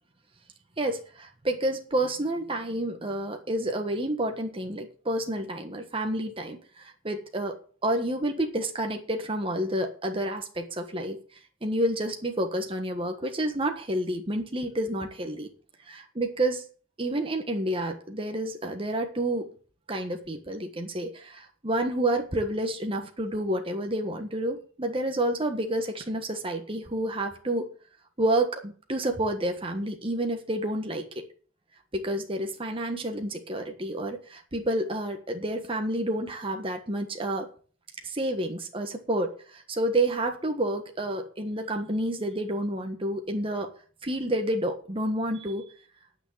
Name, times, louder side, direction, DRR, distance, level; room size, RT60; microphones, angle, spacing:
voice 1, 0.8-11.2 11.6-15.5 15.9-16.6 17.0-19.5 19.9-27.7 28.2-31.3 31.9-37.5 38.0-43.7 44.0-45.7, right 1 dB, 25° right, 3 dB, 1.4 m, -29 dB
10.0 x 6.4 x 9.1 m, 0.42 s
head